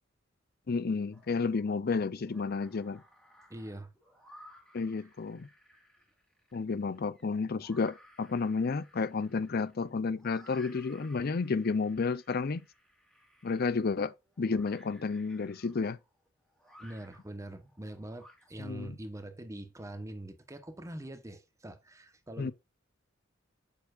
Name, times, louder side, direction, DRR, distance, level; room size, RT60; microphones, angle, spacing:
voice 1, 0.7-3.0 4.7-5.5 6.5-12.7 13.4-16.0 18.6-18.9 22.4-22.5, left 4 dB, 50° left, 0.5 m, -31 dB
sound 1, 1.1-1.8 2.1-18.9, equal, 5° left, 2.2 m, -59 dB
voice 2, 3.5-3.9 16.8-22.5, right 1 dB, 15° right, 1.1 m, -43 dB
7.1 x 6.8 x 2.5 m
head